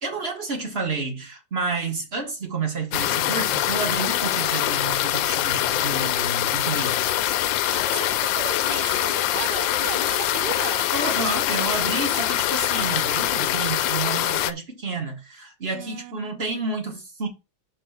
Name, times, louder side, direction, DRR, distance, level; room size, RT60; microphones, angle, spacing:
voice 1, 0.0-7.1 10.9-17.3, right 4 dB, 30° right, 1.8 m, -30 dB
sound 1, 2.9-14.5, left 13 dB, 75° left, 1.2 m, -24 dB
voice 2, 7.6-10.9 15.7-16.5, right 16 dB, 70° right, 1.0 m, -36 dB
5.5 x 4.7 x 5.8 m
omnidirectional pair, 2.3 m